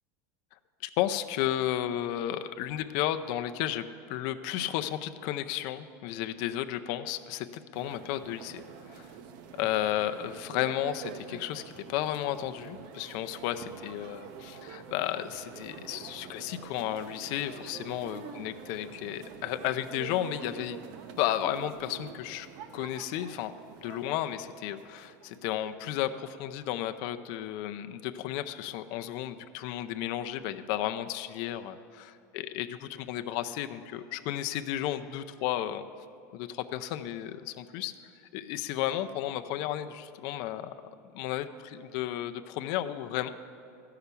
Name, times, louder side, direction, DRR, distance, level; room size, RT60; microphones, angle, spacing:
voice 1, 0.8-8.6 8.9-9.1 9.6-11.6 11.9-20.8 21.2-22.5 22.7-23.5 23.8-35.8 36.3-37.9 38.3-40.7 41.1-43.3, left 12 dB, 50° left, 9 dB, 0.5 m, -33 dB
sound 1, 7.7-25.7, right 7 dB, 50° right, 0.7 m, -46 dB
13.5 x 5.8 x 8.2 m, 2.5 s
supercardioid pair, 155°, 9 cm